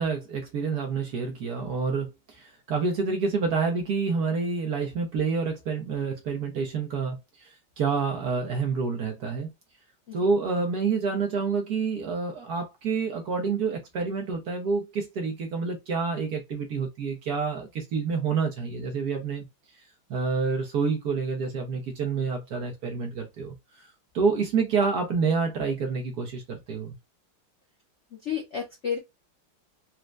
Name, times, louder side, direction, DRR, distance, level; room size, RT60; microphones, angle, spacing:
voice 1, 0.0-9.5 10.1-19.4 20.1-23.9 24.1-27.0, right 5 dB, 65° right, 1.0 m, -28 dB
voice 2, 28.2-29.0, left 7 dB, 85° left, 0.6 m, -31 dB
4.2 x 2.1 x 2.3 m
omnidirectional pair, 2.3 m